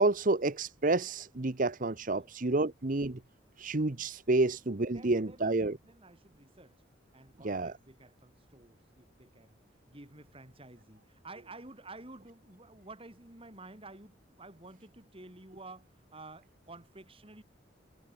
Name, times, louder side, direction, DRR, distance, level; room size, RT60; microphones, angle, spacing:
voice 1, 0.0-3.2 3.6-5.8 7.4-7.7, right 2 dB, 45° right, 1.0 m, -29 dB
voice 2, 2.1-2.7 4.4-4.5 4.9-6.8 7.1-9.6 9.9-17.4, right 2 dB, 30° right, 5.7 m, -52 dB
head